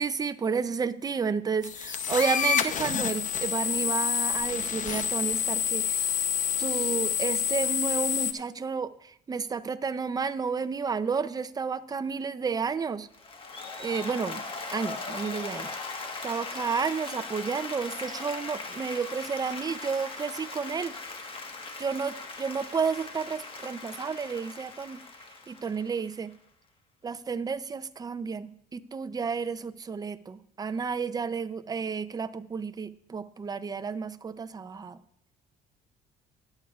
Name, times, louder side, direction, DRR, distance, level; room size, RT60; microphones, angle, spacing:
voice 1, 0.0-6.3 6.6-13.1 13.8-14.4 14.7-15.8 16.2-21.0 21.8-25.0 25.5-26.3 27.0-35.0, right 5 dB, 25° right, 12 dB, 0.5 m, -31 dB
sound 1, 1.6-8.3, left 8 dB, 50° left, 0.8 m, -28 dB
Applause, 13.1-26.3, left 3 dB, 30° left, 1.4 m, -39 dB
18.5 x 8.5 x 2.4 m, 0.71 s
cardioid pair, 110°, 17 cm